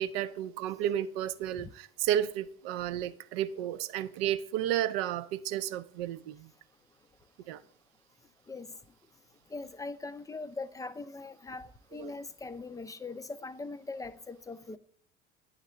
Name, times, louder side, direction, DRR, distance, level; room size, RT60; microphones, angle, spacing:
voice 1, 0.0-6.5 7.5-7.6 12.0-12.1, right 11 dB, 70° right, 0.5 m, -32 dB
voice 2, 9.5-14.8, left 3 dB, 10° left, 0.4 m, -41 dB
9.6 x 3.2 x 3.7 m
hypercardioid pair, 65°, 31 cm